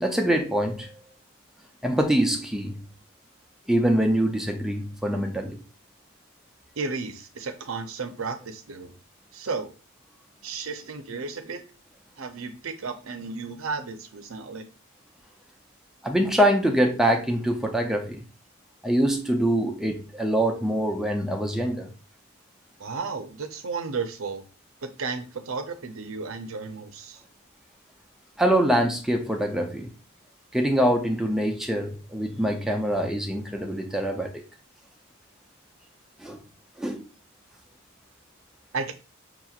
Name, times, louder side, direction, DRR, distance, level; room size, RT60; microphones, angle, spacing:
voice 1, 0.0-0.9 1.8-2.9 3.7-5.6 16.0-18.3 18.8-21.9 28.4-29.9 30.5-34.4 36.2-36.4 36.8-37.0, right 1 dB, ahead, 0.5 m, -24 dB
voice 2, 6.8-8.9 9.3-9.7 10.4-11.6 12.2-14.7 22.8-24.4 24.8-27.2 38.7-38.9, right 4 dB, 70° right, 0.6 m, -33 dB
5.9 x 2.9 x 2.4 m
head